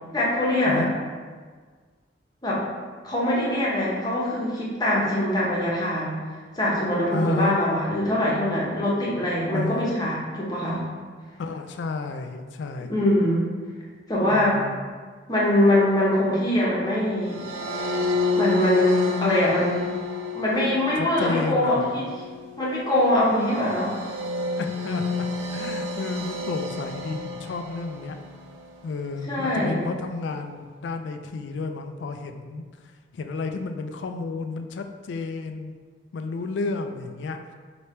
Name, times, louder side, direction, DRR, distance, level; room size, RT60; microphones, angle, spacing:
voice 1, 0.1-0.9 2.4-2.7 3.0-6.2 6.6-10.9 12.8-13.4 14.1-14.6 15.3-17.5 18.4-20.0 20.3-22.1 22.6-23.9 29.3-29.8, left 1 dB, 20° left, -6 dB, 0.9 m, -23 dB
voice 2, 7.1-7.6 9.5-9.9 11.4-12.9 14.3-14.8 21.0-22.0 24.6-28.2 28.8-32.6 33.1-35.7 36.1-37.5, left 3 dB, 65° left, 7 dB, 0.3 m, -31 dB
sound 1, 17.3-28.6, left 3 dB, 80° right, 0.5 m, -30 dB
3.2 x 2.9 x 4.3 m, 1.5 s
head